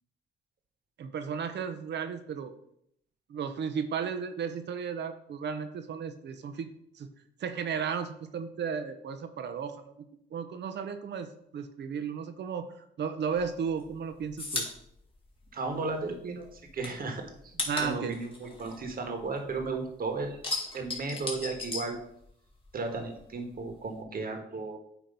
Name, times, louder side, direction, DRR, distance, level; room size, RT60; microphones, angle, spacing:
voice 1, 1.0-2.5 3.3-6.7 7.0-7.1 7.4-9.9 10.3-14.7 17.6-18.2, right 6 dB, 65° right, 8 dB, 0.8 m, -34 dB
sound 1, 13.3-16.1 16.4-19.7 20.0-22.6 22.9-24.0, left 3 dB, 30° left, 1.9 m, -37 dB
voice 2, 15.5-17.5 17.8-20.4 20.7-22.0 22.7-24.8, right 3 dB, 50° right, 5 dB, 1.4 m, -35 dB
9.0 x 3.0 x 5.3 m, 0.72 s
cardioid pair, 95°, 19 cm